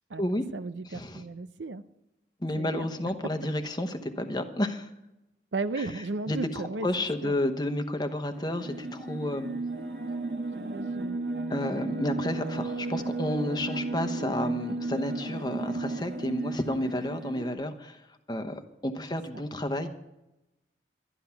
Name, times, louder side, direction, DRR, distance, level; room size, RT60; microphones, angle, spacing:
voice 1, 0.1-1.8 2.6-2.9 5.5-7.3 10.5-11.2 19.3-19.4, right 3 dB, 90° right, 13 dB, 0.6 m, -35 dB
voice 2, 0.8-1.2 2.4-4.9 5.8-5.9 6.3-9.5 11.5-18.0 18.3-19.9, left 1 dB, 25° left, 7 dB, 1.0 m, -31 dB
sound 1, 8.3-17.5, right 2 dB, 65° right, 1.4 m, -34 dB
12.5 x 11.5 x 5.8 m, 0.94 s
head